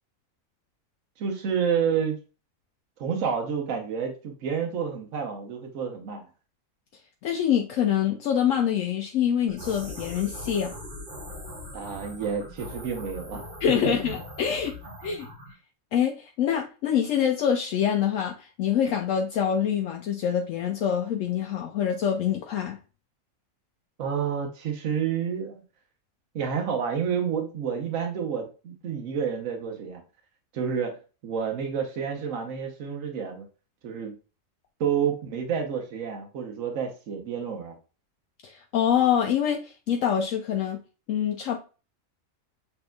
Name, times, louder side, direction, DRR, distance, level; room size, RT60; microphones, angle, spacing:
voice 1, 1.2-2.2 3.0-6.2 11.7-13.4 13.8-14.1 24.0-25.6 26.3-30.0 30.5-33.4 33.8-34.2 34.8-37.7, right 7 dB, 70° right, 4 dB, 1.3 m, -29 dB
voice 2, 7.2-10.7 13.6-14.7 15.0-15.3 15.9-22.8 38.4-40.8 41.1-41.6, left 9 dB, 70° left, 3 dB, 0.9 m, -25 dB
sound 1, 9.5-15.5, left 1 dB, 35° right, 1.4 m, -41 dB
7.0 x 3.3 x 2.3 m, 0.34 s
omnidirectional pair, 1.4 m